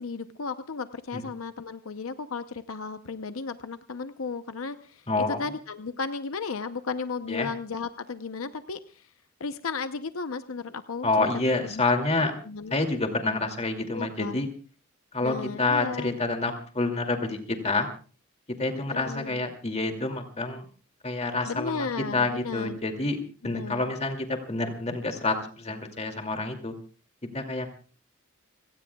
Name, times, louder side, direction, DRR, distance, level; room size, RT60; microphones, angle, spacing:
voice 1, 0.0-9.1 9.4-11.8 12.4-12.8 13.9-14.5 15.2-16.1 18.9-19.4 21.4-22.8 23.4-23.9, left 4 dB, 90° left, 10 dB, 0.8 m, -34 dB
voice 2, 5.1-5.4 7.3-7.5 11.0-12.3 12.7-14.5 15.1-17.9 18.6-20.6 21.0-23.2 23.4-26.7 27.3-27.7, left 3 dB, 30° left, 5 dB, 2.5 m, -28 dB
30.0 x 18.0 x 2.3 m, 0.39 s
head